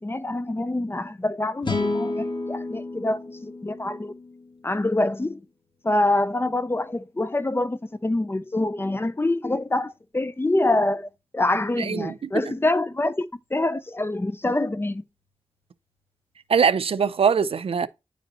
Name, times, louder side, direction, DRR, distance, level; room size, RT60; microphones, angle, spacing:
voice 1, 0.0-4.1 4.6-5.5 5.8-13.2 13.5-15.0, left 2 dB, 25° left, 0.6 m, -25 dB
sound 1, 1.6-4.9, left 2 dB, 55° left, 1.5 m, -31 dB
voice 2, 11.8-12.1 16.5-17.9, right 6 dB, 75° right, 0.5 m, -22 dB
9.8 x 5.2 x 3.0 m
wide cardioid pair, 70°, 10 cm